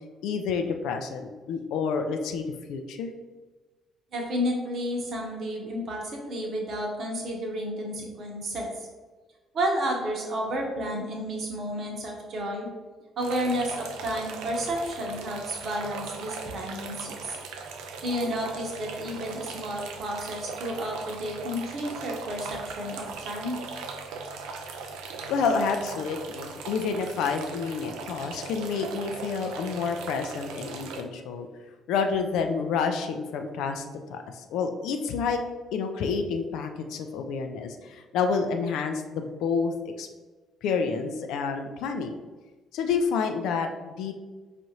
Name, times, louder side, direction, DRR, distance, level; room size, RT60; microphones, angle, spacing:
voice 1, 0.2-3.1 25.3-31.5 31.9-33.8 34.1-35.4 35.7-40.1 40.6-42.1 42.7-44.1, left 5 dB, 60° left, 5 dB, 0.3 m, -29 dB
voice 2, 4.1-8.9 9.5-12.7 13.2-17.4 18.0-23.6, equal, 50° right, 0 dB, 0.9 m, -31 dB
sound 1, 13.2-31.0, right 4 dB, 65° right, 0.3 m, -39 dB
4.9 x 2.5 x 2.8 m, 1.3 s
figure-of-eight pair, 45°, 0 cm